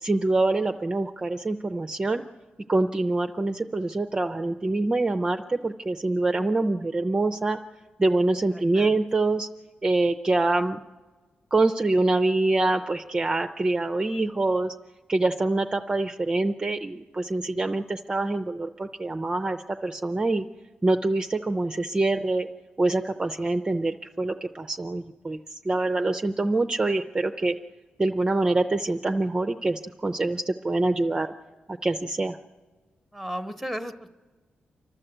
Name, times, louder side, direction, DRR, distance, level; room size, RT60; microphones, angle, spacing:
voice 1, 0.0-2.2 2.7-7.6 8.0-9.5 9.8-10.8 11.5-14.7 15.1-20.5 20.8-22.5 22.8-27.6 28.0-31.3 31.8-32.4, right 2 dB, 20° right, 7 dB, 0.5 m, -25 dB
voice 2, 8.5-8.9 33.1-34.1, equal, 5° left, 9 dB, 1.0 m, -34 dB
28.5 x 12.0 x 7.9 m, 1.4 s
wide cardioid pair, 135°, 4 cm